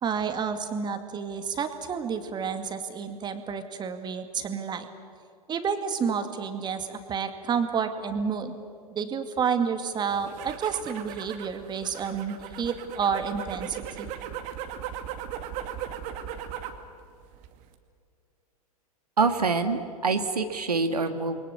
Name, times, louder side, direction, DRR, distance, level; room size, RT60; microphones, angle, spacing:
voice 1, 0.0-4.9 5.5-8.6 8.9-14.1, right 6 dB, 20° right, 8 dB, 2.3 m, -30 dB
sound 1, 10.1-16.8 17.2-17.7, right 9 dB, 40° right, 2.4 m, -38 dB
voice 2, 19.2-21.4, right 4 dB, 80° right, 8 dB, 1.7 m, -25 dB
29.0 x 22.5 x 8.5 m, 2.3 s
figure-of-eight pair, 95°, 20 cm